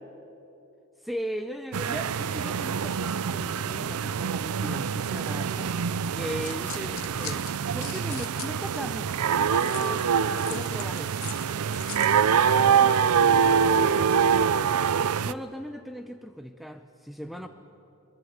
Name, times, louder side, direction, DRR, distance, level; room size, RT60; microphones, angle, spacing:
voice 1, 1.0-5.7 6.1-9.2 9.4-11.2 15.2-17.5, equal, ahead, 8 dB, 0.6 m, -38 dB
sound 1, 1.7-9.2, right 3 dB, 70° right, 2.0 m, -52 dB
sound 2, 1.7-15.3, right 7 dB, 85° right, 0.5 m, -25 dB
sound 3, 6.2-9.0 9.5-12.2, left 15 dB, 65° left, 0.8 m, -42 dB
voice 2, 12.5-14.2 17.3-17.5, left 1 dB, 45° left, 1 dB, 6.1 m, -39 dB
22.5 x 21.5 x 8.0 m, 2.9 s
head